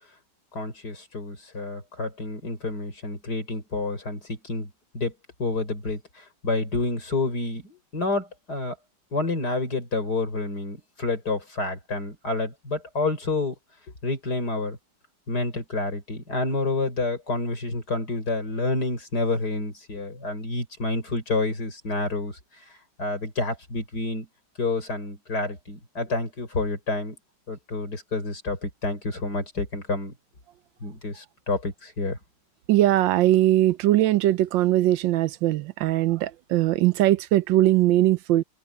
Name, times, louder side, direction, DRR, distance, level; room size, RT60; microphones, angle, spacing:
voice 1, 0.5-5.1 5.4-8.7 9.1-13.6 14.0-14.8 15.3-22.4 23.0-24.3 24.6-27.2 27.5-30.1 30.8-32.2, left 2 dB, 60° left, 6.4 m, -29 dB
voice 2, 32.7-38.4, right 14 dB, 90° right, 1.4 m, -20 dB
omnidirectional pair, 2.0 m